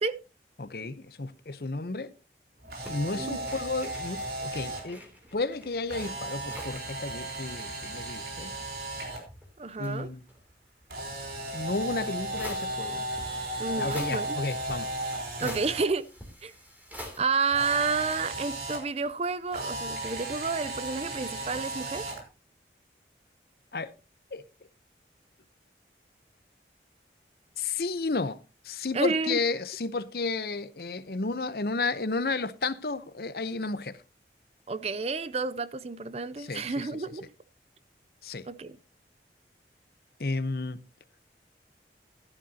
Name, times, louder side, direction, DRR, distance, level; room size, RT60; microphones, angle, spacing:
voice 1, 0.6-2.1 2.9-5.0 5.3-8.5 9.8-10.2 11.5-13.1 13.8-14.9 15.4-15.5 23.7-23.9 24.3-24.4 27.6-28.4 28.6-34.0 36.4-36.9 38.2-38.5 40.2-40.8, left 3 dB, 55° left, 0.8 m, -32 dB
Camera, 2.6-4.8 5.9-9.2 10.9-15.8 17.5-18.8 19.5-22.2, right 1 dB, 60° right, 4.1 m, -35 dB
sound 1, 2.8-6.9 7.2-7.3 7.5-8.6 9.1-10.4 11.6-11.7 12.4-17.2, equal, 10° right, 3.0 m, -46 dB
voice 2, 9.6-10.1 13.6-14.4 15.4-16.1 16.4-16.5 17.2-22.1 28.9-29.4 34.7-37.3 38.5-38.8, right 4 dB, 35° right, 0.5 m, -30 dB
14.5 x 11.5 x 2.8 m
head